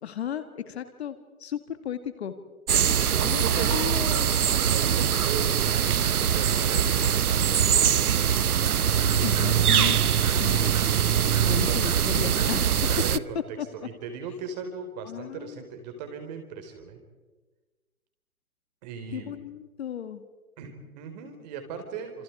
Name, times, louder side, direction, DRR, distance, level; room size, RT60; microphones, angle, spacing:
voice 1, 0.0-2.3 3.2-4.3 9.2-10.0 10.3-11.1 11.4-12.9 13.6-13.7 15.0-15.6 19.1-20.2, left 9 dB, 45° left, 10 dB, 1.8 m, -35 dB
sound 1, 2.7-13.2, right 8 dB, 85° right, 0.8 m, -23 dB
voice 2, 2.9-3.8 4.5-7.4 11.5-11.8 12.9-13.4 13.7-17.0 18.8-19.4 20.6-22.2, right 6 dB, 30° right, 6 dB, 4.5 m, -38 dB
29.5 x 27.5 x 4.8 m, 1.3 s
hypercardioid pair, 150°, 43 cm